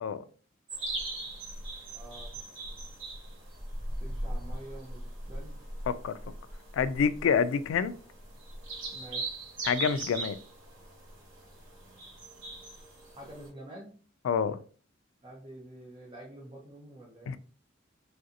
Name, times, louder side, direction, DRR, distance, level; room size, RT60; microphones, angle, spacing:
sound 1, 0.7-13.5, right 2 dB, 70° right, 1.2 m, -40 dB
voice 1, 1.9-2.4 4.0-5.6 8.9-9.4 13.2-13.9 15.2-17.3, right 1 dB, 25° right, 0.7 m, -47 dB
voice 2, 5.9-6.2 6.7-7.9 9.6-10.4 14.2-14.6 17.3-17.4, left 6 dB, 85° left, 0.3 m, -27 dB
3.1 x 2.5 x 2.7 m
head